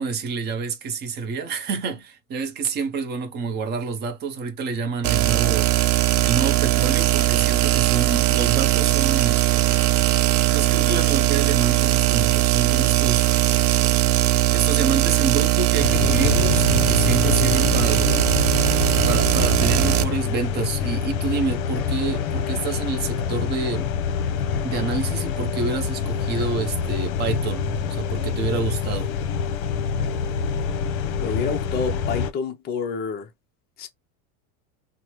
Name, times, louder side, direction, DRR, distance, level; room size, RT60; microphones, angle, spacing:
voice 1, 0.0-5.7 6.2-9.5 10.5-13.3 14.5-18.5 19.0-23.9 24.6-29.1, right 4 dB, 25° right, 0.6 m, -28 dB
sound 1, 5.0-20.0, right 15 dB, 75° right, 0.6 m, -20 dB
sound 2, 15.8-32.3, left 6 dB, 65° left, 0.8 m, -26 dB
voice 2, 31.2-33.3 33.8-33.9, left 5 dB, 20° left, 0.5 m, -28 dB
3.2 x 2.1 x 2.8 m
supercardioid pair, 145°, 45 cm